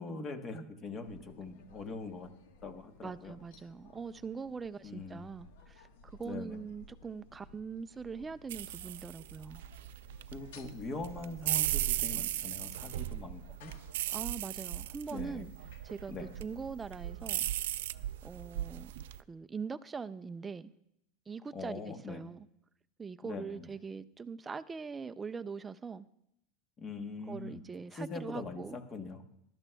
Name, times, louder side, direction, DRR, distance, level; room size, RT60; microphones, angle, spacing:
voice 1, 0.0-2.3 2.6-3.4 4.8-5.3 6.2-6.6 10.3-13.7 15.1-15.4 16.1-16.3 21.5-22.2 23.2-23.7 26.8-29.2, left 3 dB, 20° left, 6 dB, 1.0 m, -42 dB
sound 1, 1.0-18.2, left 3 dB, 90° left, 1.2 m, -58 dB
voice 2, 3.0-9.6 14.1-15.5 15.8-17.4 18.2-18.9 19.3-20.7 21.3-22.5 23.0-26.1 27.3-28.8, right 5 dB, 10° right, 12 dB, 0.3 m, -42 dB
sound 2, 8.5-19.2, right 14 dB, 85° right, 0.4 m, -37 dB
20.5 x 12.0 x 2.2 m, 0.78 s
supercardioid pair, 165°, 0 cm